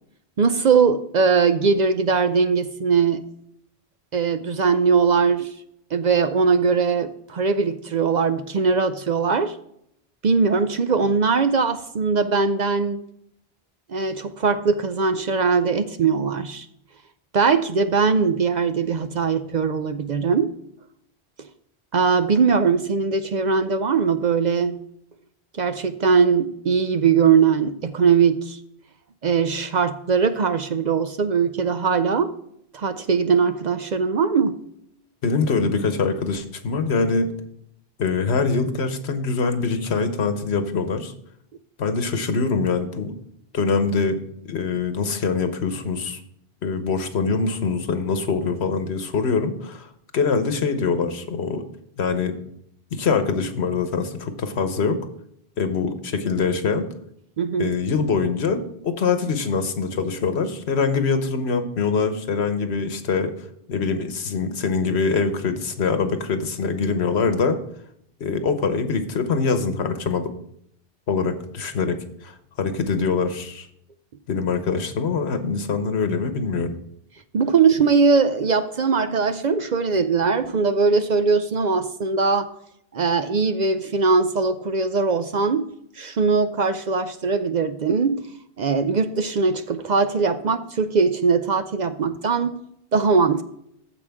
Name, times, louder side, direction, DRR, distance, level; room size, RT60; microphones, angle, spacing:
voice 1, 0.4-3.2 4.1-5.5 5.9-9.6 10.2-13.0 13.9-16.7 17.3-20.5 21.9-24.8 25.6-28.6 29.2-32.3 32.7-34.6 57.4-57.7 77.3-82.5 82.9-88.3 88.6-92.6 92.9-93.4, right 5 dB, 55° right, 10 dB, 0.6 m, -20 dB
voice 2, 35.2-37.3 38.0-41.1 41.8-43.1 43.5-44.2 44.5-46.2 46.6-51.6 52.0-52.3 52.9-55.0 55.6-56.8 57.6-67.6 68.2-70.3 71.1-73.7 74.3-76.7, left 4 dB, 85° left, 8 dB, 1.3 m, -24 dB
14.5 x 4.9 x 3.5 m, 0.73 s
omnidirectional pair, 1.1 m